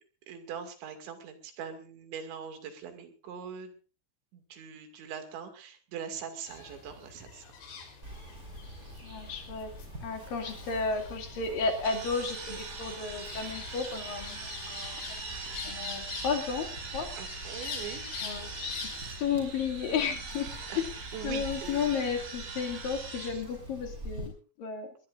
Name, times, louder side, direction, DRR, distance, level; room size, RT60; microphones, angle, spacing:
voice 1, 0.3-3.7 4.3-7.5 12.2-12.4 17.2-18.2 20.7-21.7 22.1-22.3 23.3-23.4, right 7 dB, 75° right, 7 dB, 4.5 m, -42 dB
sound 1, 6.5-19.1, left 5 dB, 80° left, 6.1 m, -45 dB
Insect, 8.0-24.3, right 1 dB, 20° right, 5.9 m, -46 dB
voice 2, 9.0-9.7 10.0-15.0 15.6-17.1 17.4-17.6 18.2-18.9 19.2-20.5 21.2-24.3 24.6-24.9, left 5 dB, 55° left, 5 dB, 3.8 m, -33 dB
sound 2, 11.8-23.3, right 4 dB, 50° right, 5.1 m, -42 dB
21.5 x 20.0 x 2.5 m, 0.37 s
omnidirectional pair, 5.2 m